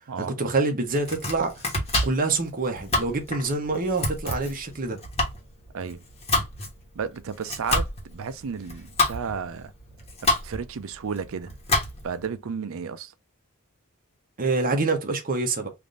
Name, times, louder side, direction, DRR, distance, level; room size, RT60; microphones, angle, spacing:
voice 1, 0.2-1.5 2.0-5.0 14.4-15.7, right 3 dB, 40° right, 0.9 m, -26 dB
Domestic sounds home sounds, 0.9-12.2, left 2 dB, 30° left, 1.2 m, -29 dB
voice 2, 7.0-9.7 10.4-11.5 12.0-13.1, right 6 dB, 65° right, 0.5 m, -33 dB
3.5 x 2.6 x 3.7 m
head